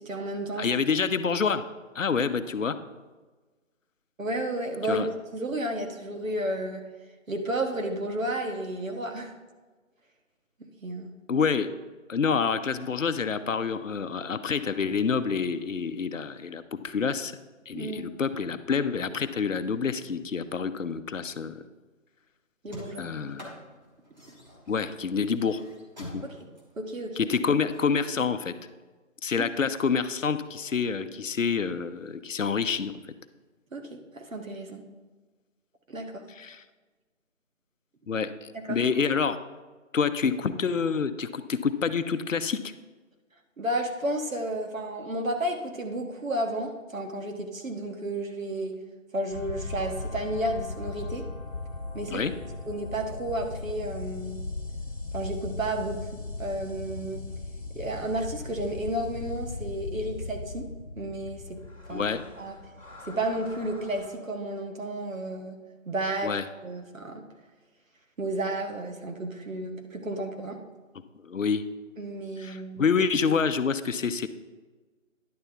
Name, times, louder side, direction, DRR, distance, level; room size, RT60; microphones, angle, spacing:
voice 1, 0.0-0.7 4.2-5.1 5.3-6.8 7.3-9.3 10.8-11.1 17.7-18.1 22.6-23.3 26.2-26.5 26.8-27.3 29.3-29.4 33.7-34.8 35.9-36.3 38.5-38.8 43.6-48.7 49.1-51.3 51.9-52.2 52.7-54.4 55.1-57.2 57.7-60.7 61.0-61.6 61.9-62.1 62.4-62.6 63.0-65.6 65.8-66.3 66.6-67.2 68.2-70.6 72.0-72.9, right 1 dB, 75° right, 3 dB, 1.5 m, -32 dB
voice 2, 0.6-1.6 1.9-2.8 4.9-5.1 11.3-11.7 12.1-17.3 17.7-21.6 23.0-23.5 24.7-25.6 26.1-26.2 27.2-28.5 29.2-32.9 36.4-36.6 38.1-39.4 39.9-42.7 52.1-52.3 61.9-62.2 66.2-66.4 71.2-71.6 72.4-74.3, left 5 dB, 70° left, 11 dB, 0.7 m, -27 dB
sound 1, 22.7-27.8, left 1 dB, 35° right, 1.6 m, -46 dB
sound 2, 49.3-64.1, left 3 dB, 25° left, 1.2 m, -38 dB
10.5 x 6.9 x 3.4 m, 1.3 s
figure-of-eight pair, 175°, 40 cm